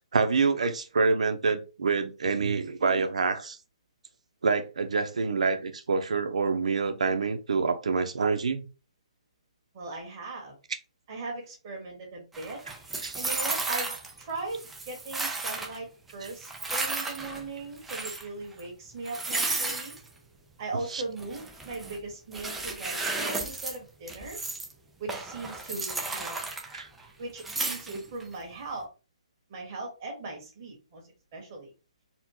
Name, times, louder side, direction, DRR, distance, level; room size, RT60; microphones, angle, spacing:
voice 1, 0.0-3.6 4.4-8.6 13.0-13.2 20.9-21.0 26.7-26.9, right 4 dB, 75° right, 0.8 m, -26 dB
voice 2, 9.7-10.6 11.1-12.6 13.1-14.6 14.9-19.9 20.6-24.4 25.0-26.4 27.2-28.9 29.5-31.0 31.3-31.7, right 3 dB, 25° right, 1.6 m, -38 dB
sound 1, 12.3-14.2 14.5-15.8 16.2-17.5 17.8-18.3 18.6-18.7 19.0-20.0 21.2-22.0 22.3-23.8 24.1-24.7 25.1-27.1 27.4-28.2, right 3 dB, 5° right, 0.4 m, -33 dB
4.2 x 2.3 x 4.3 m
hypercardioid pair, 175°, 4 cm